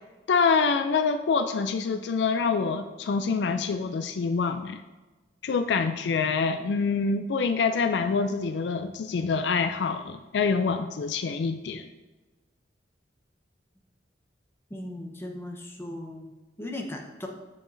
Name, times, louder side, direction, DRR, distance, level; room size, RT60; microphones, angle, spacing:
voice 1, 0.3-4.8 5.4-11.9, left 5 dB, 65° left, 9 dB, 0.4 m, -26 dB
voice 2, 14.7-16.3 16.6-17.3, left 1 dB, 15° left, 2 dB, 0.8 m, -37 dB
7.8 x 7.2 x 2.6 m, 1.2 s
head